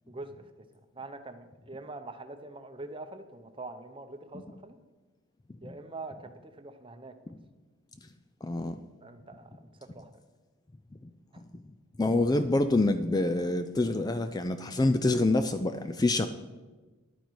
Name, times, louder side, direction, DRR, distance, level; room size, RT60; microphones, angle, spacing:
voice 1, 0.1-0.5 0.9-4.8 5.6-7.1 9.0-9.6 9.9-10.2 11.3-11.4, right 2 dB, 25° right, 8 dB, 0.7 m, -44 dB
voice 2, 8.4-8.8 12.0-16.3, left 2 dB, 20° left, 9 dB, 0.4 m, -26 dB
11.5 x 9.1 x 4.7 m, 1.2 s
head